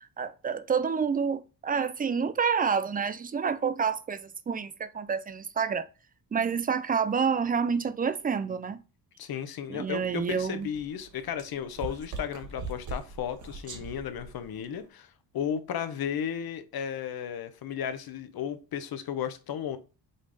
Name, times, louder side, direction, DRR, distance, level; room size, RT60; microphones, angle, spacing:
voice 1, 0.0-5.9 6.3-8.8 9.7-10.7, right 6 dB, 25° right, 0.3 m, -28 dB
voice 2, 9.2-19.8, left 8 dB, 60° left, 0.8 m, -34 dB
sound 1, 9.9-14.9, right 3 dB, 45° right, 1.0 m, -42 dB
5.3 x 2.5 x 3.3 m
cardioid pair, 85°, 41 cm